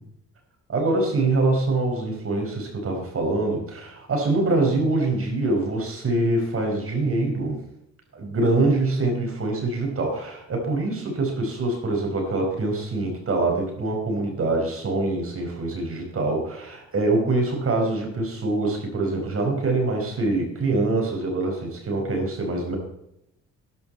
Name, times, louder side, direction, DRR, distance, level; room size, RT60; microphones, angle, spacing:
voice 1, 0.7-7.6 8.1-22.8, right 2 dB, 45° right, 1 dB, 4.9 m, -24 dB
13.0 x 11.0 x 4.5 m, 0.81 s
cardioid pair, 90°, 30 cm